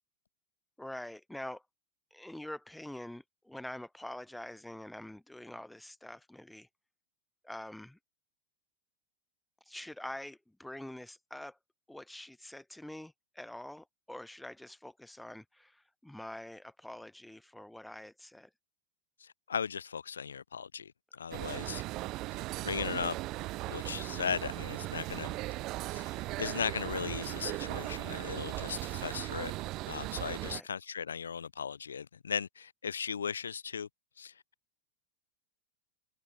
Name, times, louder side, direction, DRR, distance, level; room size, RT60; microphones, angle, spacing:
voice 1, 0.8-1.6 2.1-6.7 7.4-8.0 9.7-11.6 11.9-18.5 30.4-30.7, left 1 dB, 5° left, 2.8 m, -45 dB
voice 2, 19.2-21.8 22.6-23.2 23.7-25.4 25.9-29.5 29.9-33.9 34.2-34.3, left 7 dB, 70° left, 0.8 m, -37 dB
sound 1, 21.3-30.6, right 19 dB, 40° right, 0.7 m, -38 dB
figure-of-eight pair, 90°, 0 cm